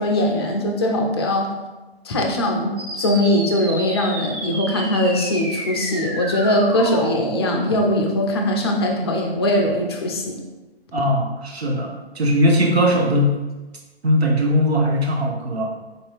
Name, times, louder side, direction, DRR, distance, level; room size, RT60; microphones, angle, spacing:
voice 1, 0.0-1.5 2.0-10.4, left 1 dB, 25° left, 1 dB, 0.4 m, -21 dB
sound 1, 2.8-7.8, right 1 dB, 55° right, 1.1 m, -31 dB
voice 2, 10.9-13.4 14.0-15.7, equal, 75° right, 0 dB, 1.0 m, -19 dB
4.3 x 2.7 x 3.3 m, 1.2 s
figure-of-eight pair, 135°, 32 cm